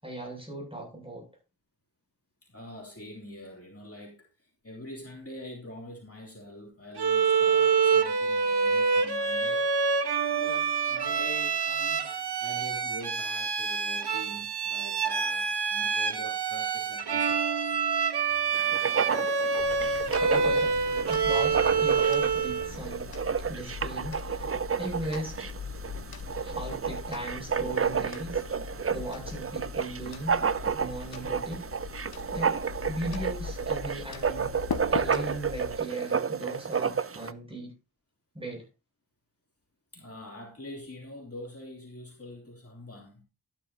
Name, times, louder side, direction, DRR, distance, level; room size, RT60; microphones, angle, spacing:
voice 1, 0.0-1.3 20.3-20.8 21.1-23.1 23.4-25.5 26.4-28.4 28.9-30.4 30.7-31.6 32.3-32.5 32.8-34.5 34.9-37.7 38.3-38.7, right 1 dB, 15° right, 7.6 m, -37 dB
voice 2, 2.4-9.7 10.3-17.8 39.9-43.2, left 1 dB, 35° left, 3.1 m, -45 dB
Bowed string instrument, 7.0-22.7, right 5 dB, 85° right, 1.3 m, -27 dB
Writing, 18.5-37.3, right 6 dB, 35° right, 0.6 m, -31 dB
sound 1, 19.6-35.8, left 7 dB, 65° left, 0.8 m, -41 dB
12.5 x 10.5 x 2.8 m
wide cardioid pair, 65°, 38 cm